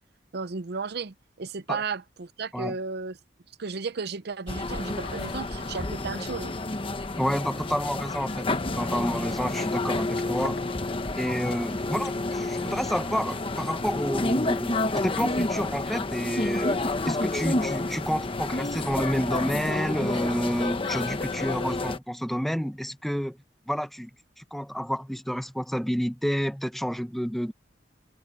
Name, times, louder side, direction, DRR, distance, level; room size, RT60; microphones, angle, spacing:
voice 1, 0.3-3.2 3.6-6.5, right 4 dB, 60° right, 0.7 m, -34 dB
sound 1, 4.5-22.0, left 2 dB, 30° left, 1.0 m, -29 dB
sound 2, 5.0-6.8 7.1-14.9, left 4 dB, 60° left, 1.5 m, -48 dB
voice 2, 7.2-10.7 11.2-23.4 23.7-24.1 24.4-27.5, equal, ahead, 0.9 m, -29 dB
head